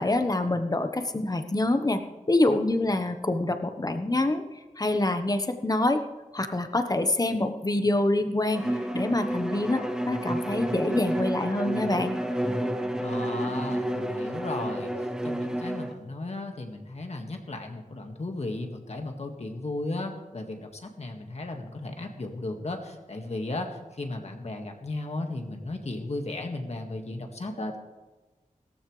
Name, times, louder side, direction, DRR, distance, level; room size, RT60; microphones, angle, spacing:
voice 1, 0.0-2.0 2.3-4.4 4.8-6.0 6.3-8.6 8.9-12.2, left 2 dB, 30° left, 7 dB, 1.2 m, -26 dB
Bowed string instrument, 8.5-16.0, right 1 dB, 5° right, 1.2 m, -30 dB
voice 2, 13.0-14.9 15.2-27.8, left 2 dB, 55° left, 3 dB, 1.9 m, -35 dB
17.0 x 14.5 x 3.3 m, 1.2 s
wide cardioid pair, 80°, 13 cm